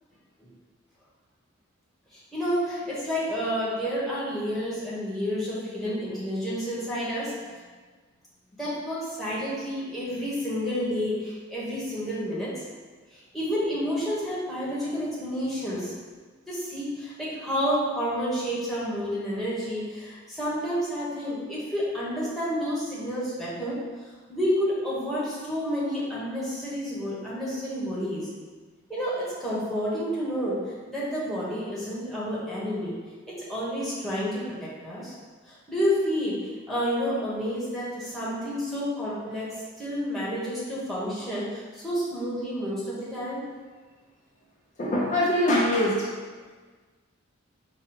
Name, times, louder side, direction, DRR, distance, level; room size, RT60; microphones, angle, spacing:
voice 1, 2.1-7.5 8.6-12.5 13.1-15.9 16.5-24.0 24.3-28.3 28.9-30.6 30.9-32.9 33.3-35.1 35.5-36.4 36.7-39.5 39.8-43.4, equal, ahead, -8 dB, 1.1 m, -30 dB
voice 2, 44.8-46.0, left 1 dB, 35° left, -5 dB, 0.5 m, -23 dB
4.8 x 2.2 x 4.7 m, 1.4 s
head